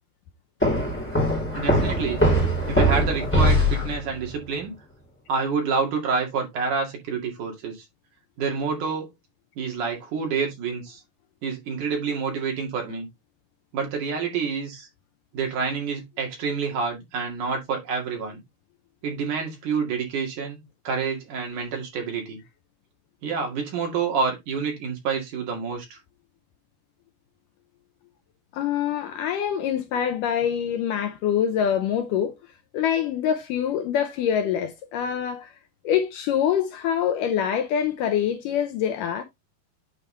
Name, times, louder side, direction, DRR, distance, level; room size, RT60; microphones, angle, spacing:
sound 1, 0.6-4.3, equal, 5° left, 3.2 m, -22 dB
voice 1, 1.5-2.2 2.7-4.7 5.3-7.9 8.4-9.1 9.6-11.0 11.4-13.1 13.7-14.9 15.3-18.4 19.0-22.4 23.2-26.0, right 5 dB, 60° right, 3.5 m, -28 dB
voice 2, 28.5-32.4 32.7-35.5 35.8-39.2, left 9 dB, 75° left, 2.0 m, -25 dB
9.3 x 4.8 x 3.2 m
omnidirectional pair, 4.3 m